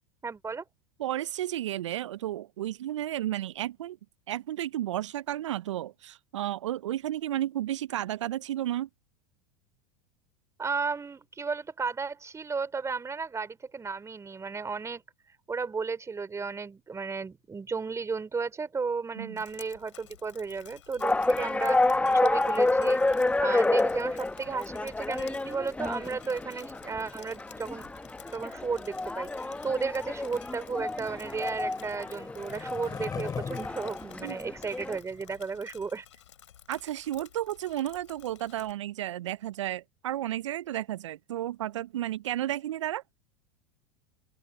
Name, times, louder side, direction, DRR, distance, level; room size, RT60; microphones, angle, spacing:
voice 1, 0.2-0.6 10.6-15.0 15.5-23.0 23.4-27.9 28.3-29.3 29.6-36.1, right 5 dB, 20° right, 3.5 m, -34 dB
voice 2, 1.0-4.0 4.3-8.9 19.2-19.4 34.2-34.4 36.7-43.0, right 13 dB, 75° right, 0.5 m, -32 dB
Drip, 19.4-38.7, left 10 dB, 80° left, 4.5 m, -54 dB
sound 1, 21.0-35.0, left 2 dB, 10° left, 1.3 m, -29 dB
Skateboard, 29.9-35.4, left 6 dB, 25° left, 3.2 m, -42 dB
open air
hypercardioid pair, 85°, 16 cm